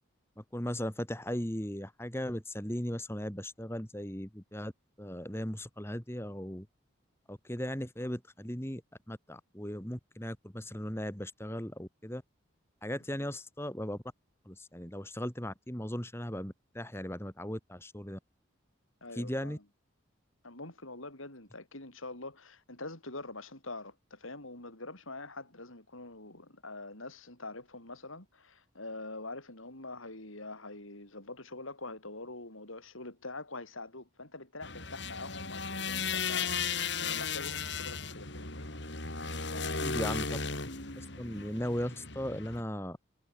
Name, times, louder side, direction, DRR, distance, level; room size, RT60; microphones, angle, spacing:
voice 1, 0.4-4.7 5.0-6.7 7.3-8.8 9.1-12.2 12.8-14.0 14.5-18.2 19.1-19.6 39.8-40.3 41.0-43.0, equal, 10° left, 2.4 m, -37 dB
voice 2, 19.0-19.6 20.4-36.6 37.0-38.7 39.5-40.3, left 2 dB, 80° left, 7.8 m, -45 dB
sound 1, 34.6-42.6, left 5 dB, 60° left, 4.9 m, -36 dB
head